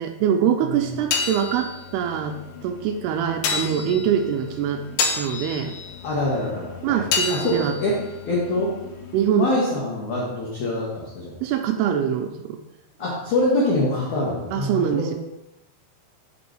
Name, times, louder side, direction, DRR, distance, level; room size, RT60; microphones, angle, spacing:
voice 1, 0.0-4.8 5.1-5.7 6.8-7.8 9.1-9.5 11.4-12.6 14.5-15.1, right 8 dB, 90° right, 4 dB, 2.3 m, -24 dB
sound 1, 0.7-9.3, left 5 dB, 85° left, 2.1 m, -31 dB
voice 2, 6.0-7.0 7.3-8.0 8.3-8.7 9.4-11.4 13.0-15.1, left 2 dB, 65° left, -5 dB, 2.0 m, -25 dB
9.2 x 6.1 x 3.0 m, 0.93 s
omnidirectional pair, 5.2 m